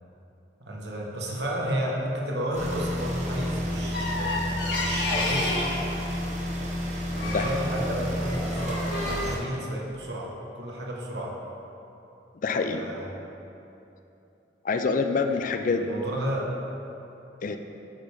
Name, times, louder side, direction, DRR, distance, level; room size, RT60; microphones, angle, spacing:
voice 1, 0.6-5.6 7.1-11.3 12.5-13.1 15.3-16.4, equal, 65° right, -3 dB, 1.2 m, -32 dB
sound 1, 2.5-9.4, equal, 40° right, 1.2 m, -31 dB
sound 2, 3.9-5.8 7.2-7.6 8.2-9.2, left 2 dB, 65° left, 1.5 m, -30 dB
voice 2, 12.4-12.9 14.6-15.9 17.4-17.6, left 4 dB, 45° left, 7 dB, 0.4 m, -26 dB
8.8 x 6.5 x 3.5 m, 2.9 s
head